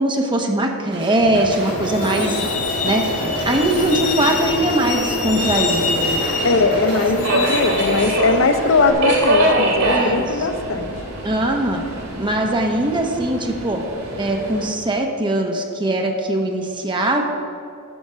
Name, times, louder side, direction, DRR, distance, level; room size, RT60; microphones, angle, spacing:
voice 1, 0.0-2.5 2.8-3.0 3.5-6.2 7.8-7.9 9.9-10.3 11.2-11.8 12.2-13.8 14.2-17.2, right 1 dB, 20° right, 2 dB, 1.0 m, -21 dB
sound 1, 0.9-7.2, right 2 dB, 50° right, 1.4 m, -33 dB
Truck, 1.5-8.9, left 3 dB, 85° left, 1.5 m, -25 dB
Subway metro underground, 2.3-14.7, right 1 dB, 85° right, 2.6 m, -25 dB
voice 2, 6.4-10.9, left 3 dB, 65° left, 8 dB, 0.7 m, -19 dB
10.0 x 6.2 x 6.2 m, 2.5 s
head